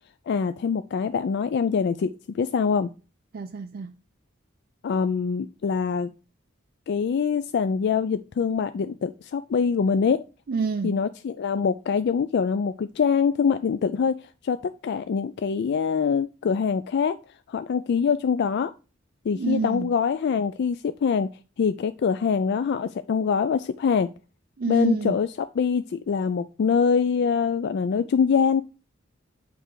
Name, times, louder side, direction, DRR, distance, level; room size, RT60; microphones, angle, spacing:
voice 1, 0.3-2.9 4.8-6.1 6.9-10.2 10.8-14.2 14.4-14.6 14.8-17.2 17.5-18.7 19.3-21.3 21.6-24.1 24.7-28.6, left 6 dB, 55° left, 0.3 m, -24 dB
voice 2, 3.3-3.9 10.5-11.0 19.3-19.9 24.6-25.2, right 5 dB, 50° right, 0.4 m, -28 dB
8.8 x 3.3 x 4.7 m
head